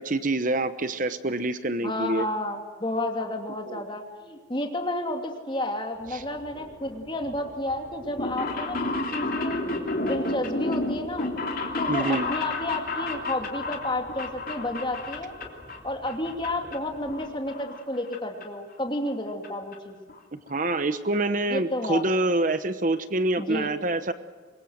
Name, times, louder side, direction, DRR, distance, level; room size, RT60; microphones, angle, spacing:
voice 1, 0.0-2.3 3.7-3.8 6.1-6.2 11.9-12.3 20.3-24.1, right 2 dB, 40° right, 11 dB, 1.0 m, -26 dB
voice 2, 1.8-9.6 10.0-11.3 11.8-15.3 15.8-20.0 21.5-22.0 23.4-23.7, left 1 dB, 25° left, 3 dB, 2.7 m, -31 dB
sound 1, 5.9-17.3, equal, ahead, 7.7 m, -49 dB
sound 2, 8.0-15.8 16.1-16.8 17.1-18.2 18.4-18.5 19.4-19.5 19.7-19.8 20.1-20.2 20.5-20.7 21.1-21.2 21.4-21.5, left 2 dB, 45° left, 3.1 m, -31 dB
25.5 x 22.5 x 6.5 m, 1.5 s
head